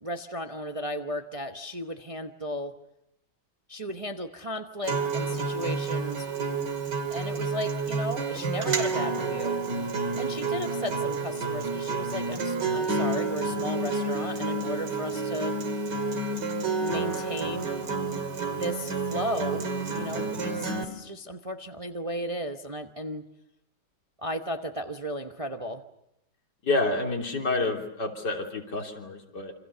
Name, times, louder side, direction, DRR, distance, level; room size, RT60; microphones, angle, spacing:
voice 1, 0.0-2.8 3.7-6.3 7.1-9.6 10.1-15.6 16.8-17.8 18.5-23.3 24.2-25.8, equal, 25° right, 5 dB, 1.0 m, -35 dB
Acoustic guitar, 4.8-20.8, right 3 dB, 80° right, 3.1 m, -30 dB
voice 2, 26.6-29.5, left 2 dB, 80° left, 2 dB, 3.9 m, -28 dB
28.0 x 26.0 x 6.9 m, 0.81 s
omnidirectional pair, 1.8 m